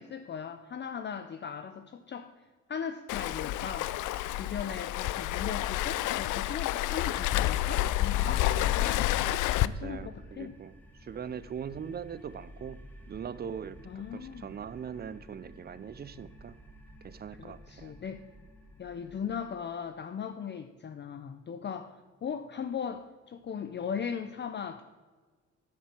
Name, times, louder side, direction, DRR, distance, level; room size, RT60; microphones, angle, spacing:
voice 1, 0.0-2.3 2.7-3.9 4.3-9.0 9.6-10.6 13.9-14.5 17.4-18.2 18.8-21.9 22.2-24.8, left 7 dB, 35° left, 8 dB, 0.6 m, -38 dB
Waves surf, 3.1-9.7, left 14 dB, 80° left, 0.5 m, -29 dB
sound 1, 7.7-19.4, equal, 5° left, 1.6 m, -53 dB
voice 2, 9.7-16.5 17.0-17.9, right 7 dB, 35° right, 17 dB, 0.5 m, -41 dB
10.5 x 7.4 x 6.0 m, 1.4 s
cardioid pair, 90°, 30 cm